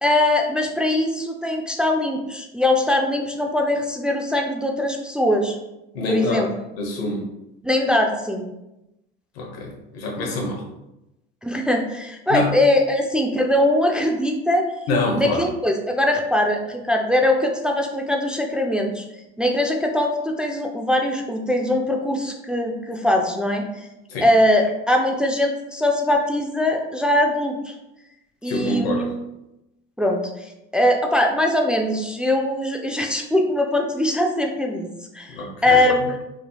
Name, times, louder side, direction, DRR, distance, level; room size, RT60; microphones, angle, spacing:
voice 1, 0.0-5.6 6.1-6.5 7.6-8.4 11.4-14.7 15.1-19.1 19.4-23.9 24.2-27.7 28.4-29.2 30.0-30.5 30.7-34.9 35.1-36.2, left 1 dB, 5° right, 2 dB, 0.4 m, -21 dB
voice 2, 5.9-6.5 6.8-7.2 9.3-10.6 12.3-12.5 14.9-15.4 24.1-24.3 28.4-29.1 35.3-35.8, left 2 dB, 90° left, 0 dB, 1.0 m, -25 dB
4.9 x 2.7 x 2.2 m, 0.92 s
supercardioid pair, 95°, 29 cm